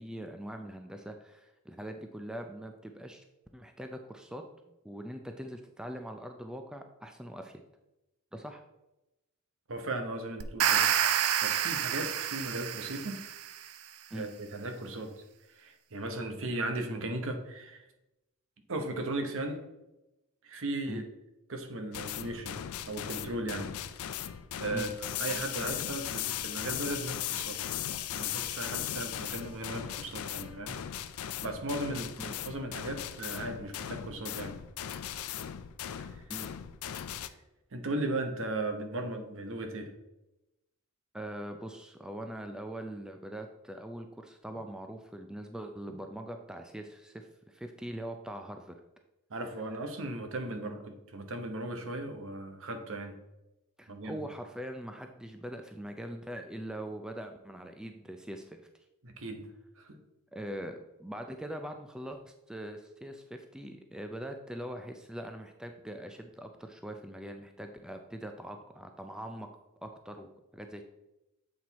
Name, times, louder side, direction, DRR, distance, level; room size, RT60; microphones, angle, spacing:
voice 1, 0.0-3.2 3.5-4.4 4.8-7.6 8.3-8.6 14.1-14.3 20.9-21.0 24.7-24.9 32.2-32.3 36.3-36.5 41.1-48.8 53.8-58.7 60.3-69.5 69.8-70.8, right 1 dB, 5° right, 5 dB, 0.4 m, -42 dB
voice 2, 9.7-10.9 11.4-13.2 14.1-15.1 15.5-17.9 18.7-19.6 20.4-21.0 21.5-22.6 22.9-23.7 24.1-24.3 24.6-27.8 28.1-30.8 31.4-34.6 36.0-36.2 37.7-39.9 49.3-53.2 53.9-54.2 59.0-59.4 59.8-60.0, right 2 dB, 60° right, 6 dB, 1.0 m, -37 dB
sound 1, 10.4-13.6, right 10 dB, 80° right, 0.5 m, -28 dB
sound 2, 21.9-37.3, left 10 dB, 75° left, 0.4 m, -38 dB
7.7 x 4.6 x 4.1 m, 0.95 s
head